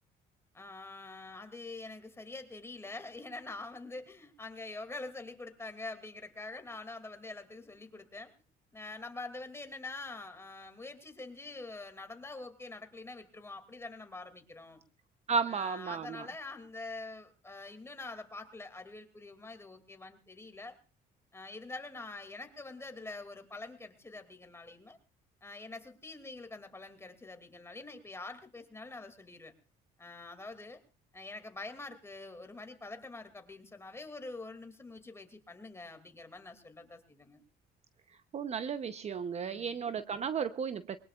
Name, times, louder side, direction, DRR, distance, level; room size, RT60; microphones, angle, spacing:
voice 1, 0.5-8.3 8.7-14.8 15.5-20.8 21.3-25.0 25.4-29.5 30.0-30.8 31.1-37.4 39.4-39.8, left 3 dB, 15° left, 7 dB, 2.5 m, -45 dB
voice 2, 15.3-16.3 38.3-41.0, right 6 dB, 40° right, 11 dB, 0.8 m, -34 dB
22.0 x 20.0 x 2.4 m, 0.36 s
cardioid pair, 110°, 17 cm